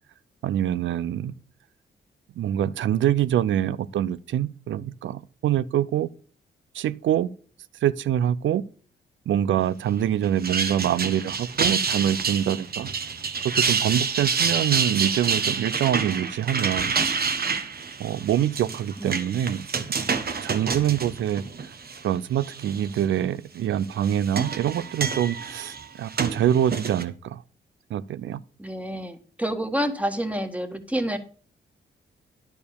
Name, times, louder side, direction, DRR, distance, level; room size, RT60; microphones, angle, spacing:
voice 1, 0.4-1.3 2.4-6.1 6.7-7.3 7.8-8.6 9.3-12.9 13.5-17.0 18.0-19.6 20.4-21.4 22.0-27.4 27.9-28.4, right 10 dB, 75° right, 0.5 m, -25 dB
sound 1, 10.2-22.0 22.4-23.0 23.8-27.0, right 5 dB, 50° right, 1.1 m, -28 dB
voice 2, 19.0-19.3 28.6-31.2, equal, 5° right, 1.5 m, -28 dB
10.5 x 4.6 x 6.8 m
cardioid pair, 60°, 20 cm